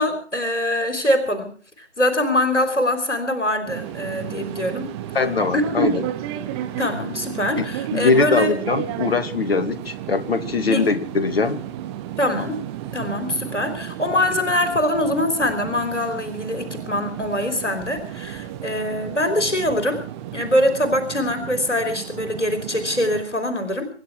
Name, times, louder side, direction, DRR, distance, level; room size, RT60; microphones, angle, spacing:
voice 1, 0.0-1.5 1.8-4.9 5.5-5.9 6.8-8.6 10.7-10.8 12.2-12.6 12.9-20.0 20.3-23.9, left 1 dB, 85° left, 6 dB, 3.6 m, -23 dB
sound 1, 3.7-23.2, right 12 dB, 25° right, 1.8 m, -33 dB
voice 2, 5.1-6.1 7.6-7.7 7.9-11.6, left 4 dB, 55° left, 8 dB, 2.5 m, -21 dB
26.5 x 11.5 x 4.7 m, 0.43 s
figure-of-eight pair, 135°, 35 cm